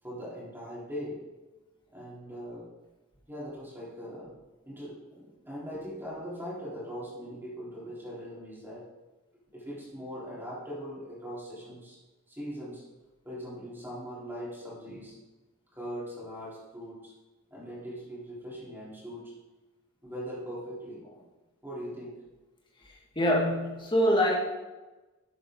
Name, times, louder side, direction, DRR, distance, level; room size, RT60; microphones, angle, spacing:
voice 1, 0.0-1.2 1.9-2.7 3.3-4.3 4.7-8.9 9.5-12.0 12.3-12.8 13.2-15.2 15.7-17.1 17.5-19.3 20.0-21.0 21.6-22.2, equal, 10° right, -7 dB, 3.8 m, -40 dB
voice 2, 23.2-24.3, equal, 20° left, -2 dB, 1.9 m, -24 dB
12.0 x 8.3 x 3.8 m, 1.1 s
head